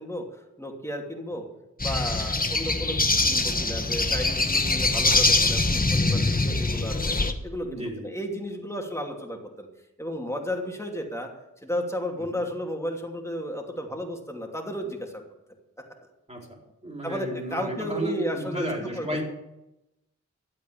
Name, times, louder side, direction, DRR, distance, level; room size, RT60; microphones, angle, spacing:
voice 1, 0.0-1.5 1.8-7.0 7.4-9.7 10.0-11.3 11.6-15.2 17.0-19.1, equal, 10° left, 1 dB, 2.7 m, -33 dB
sound 1, 1.8-7.3, left 2 dB, 30° left, 1.3 m, -23 dB
voice 2, 7.7-8.1 12.2-12.4 16.3-19.2, right 1 dB, 20° right, 0 dB, 4.4 m, -33 dB
13.0 x 8.2 x 8.7 m, 0.92 s
wide cardioid pair, 60°, 30 cm